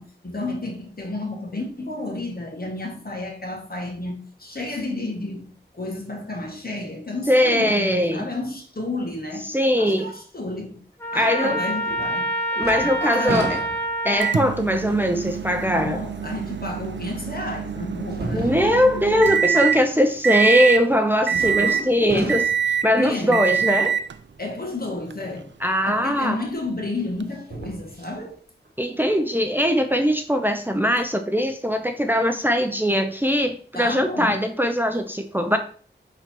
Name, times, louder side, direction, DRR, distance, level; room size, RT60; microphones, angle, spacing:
voice 1, 0.0-9.5 9.8-10.8 11.1-12.4 12.8-13.6 15.7-18.7 21.3-22.4 23.0-23.6 24.4-25.5 25.8-28.4 33.7-34.4, left 2 dB, 55° left, 1.9 m, -31 dB
voice 2, 7.3-8.2 9.5-10.1 11.1-11.6 12.5-13.6 14.0-16.0 18.3-22.4 22.8-24.0 25.6-26.4 28.8-35.6, equal, 10° right, 0.6 m, -21 dB
Trumpet, 11.0-14.4, right 1 dB, 10° left, 1.7 m, -27 dB
sound 1, 11.9-12.3 12.6-14.2 14.8-14.9 16.8-16.9 18.1-19.0 21.3-21.8 22.1-22.8 25.8-25.9 27.3-28.2 28.7-28.8, right 1 dB, 55° right, 1.2 m, -33 dB
Microwave oven, 14.2-19.8 20.2-20.9 21.3-21.9 22.3-22.9 23.3-24.1 25.1-25.2 27.2-27.3, right 7 dB, 75° right, 0.4 m, -25 dB
5.9 x 4.0 x 4.5 m
wide cardioid pair, 65°, 19 cm